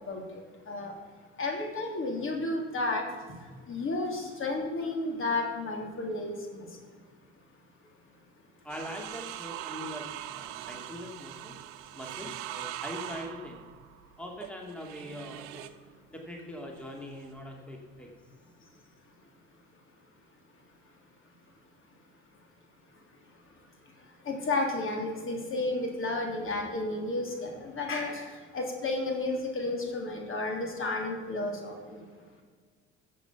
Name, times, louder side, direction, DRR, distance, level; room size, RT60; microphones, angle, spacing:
voice 1, 0.1-0.4 0.7-0.9 1.4-3.0 3.7-6.7 24.2-32.0, left 2 dB, 40° left, 2 dB, 3.2 m, -32 dB
voice 2, 8.6-11.6 11.9-13.6 14.2-15.6 16.1-18.1, left 1 dB, 5° left, 1 dB, 2.3 m, -42 dB
sound 1, 8.7-15.8 16.8-17.4, right 13 dB, 75° right, 0.8 m, -42 dB
14.5 x 7.7 x 5.9 m, 1.5 s
hypercardioid pair, 75°, 31 cm